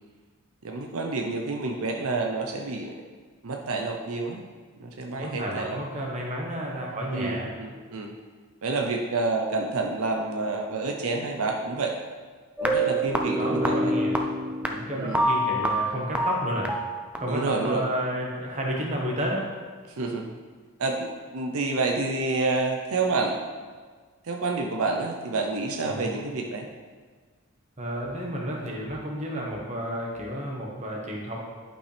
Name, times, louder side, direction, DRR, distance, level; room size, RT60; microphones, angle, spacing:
voice 1, 0.6-3.0 3.4-4.4 4.8-5.8 7.1-8.1 8.6-12.0 12.6-13.9 14.9-15.2 17.3-17.9 20.0-20.4 20.8-23.4 24.2-26.7, right 3 dB, 75° right, 2 dB, 0.7 m, -28 dB
voice 2, 5.2-7.5 13.3-14.2 14.7-16.7 17.2-19.5 25.8-26.1 27.8-31.4, equal, 30° right, -2 dB, 1.3 m, -31 dB
sound 1, 12.6-17.7, right 1 dB, 5° right, 0.4 m, -27 dB
11.5 x 5.4 x 3.4 m, 1.5 s
head